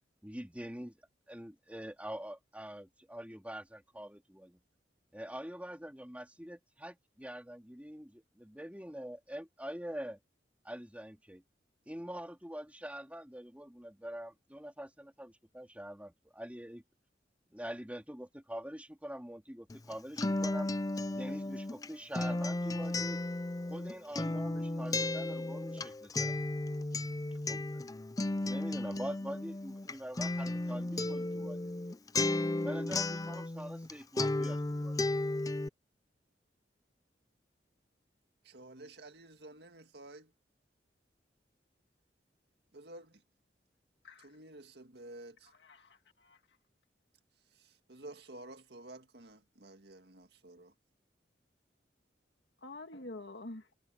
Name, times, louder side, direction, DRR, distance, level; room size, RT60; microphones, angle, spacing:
voice 1, 0.2-0.9 1.3-4.6 5.1-10.2 10.6-11.4 11.9-16.8 17.5-20.7 21.1-23.2 23.6-26.4 27.5-27.8 28.4-32.0 32.6-35.2, equal, 10° right, 3.7 m, -44 dB
Acoustic guitar, 19.7-33.9 34.2-35.7, left 2 dB, 20° left, 0.5 m, -34 dB
voice 2, 38.5-40.3 42.7-43.2 44.2-45.5 48.0-50.7, right 2 dB, 65° right, 2.0 m, -51 dB
voice 3, 45.4-46.4 52.6-53.7, left 2 dB, 75° left, 1.9 m, -48 dB
head